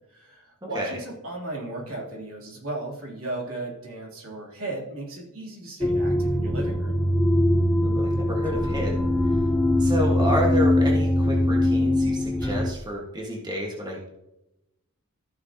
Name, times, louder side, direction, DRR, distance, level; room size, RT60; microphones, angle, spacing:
voice 1, 0.1-6.9, right 2 dB, 65° right, -2 dB, 3.2 m, -36 dB
sound 1, 5.8-12.7, left 1 dB, 5° left, 0.7 m, -22 dB
voice 2, 7.8-8.9 9.2-9.4 9.8-14.1, equal, 20° right, -2 dB, 1.6 m, -30 dB
14.5 x 6.5 x 2.9 m, 0.91 s
head